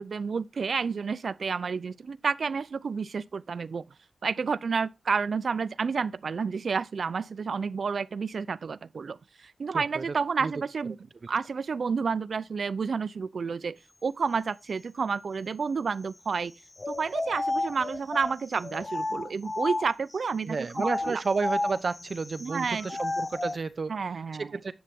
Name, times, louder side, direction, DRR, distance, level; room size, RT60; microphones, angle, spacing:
voice 1, 0.0-3.8 4.2-11.0 11.3-16.5 16.9-21.2 22.4-22.9 23.9-24.5, right 5 dB, 80° right, 0.5 m, -30 dB
voice 2, 9.7-10.0 10.4-10.5 20.4-23.9 24.4-24.7, right 4 dB, 60° right, 0.9 m, -31 dB
sound 1, 16.8-20.2 20.7-23.6, left 2 dB, 35° left, 0.7 m, -32 dB
10.5 x 8.1 x 3.6 m
wide cardioid pair, 90°, 0 cm